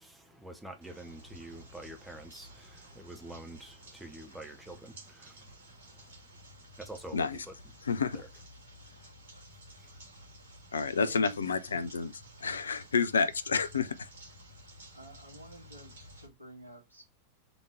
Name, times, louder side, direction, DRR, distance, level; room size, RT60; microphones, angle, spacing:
voice 1, 0.0-6.3 6.8-7.5 8.1-8.3 9.8-9.9, right 1 dB, 5° right, 0.9 m, -47 dB
sound 1, 0.8-16.3, equal, 65° right, 2.2 m, -53 dB
voice 2, 7.1-7.5 7.8-8.2 10.7-12.1 12.4-14.1, left 5 dB, 70° left, 0.5 m, -29 dB
voice 3, 11.0-11.5 14.9-17.0, right 1 dB, 80° right, 1.9 m, -52 dB
3.9 x 3.6 x 3.2 m
figure-of-eight pair, 90°, 0 cm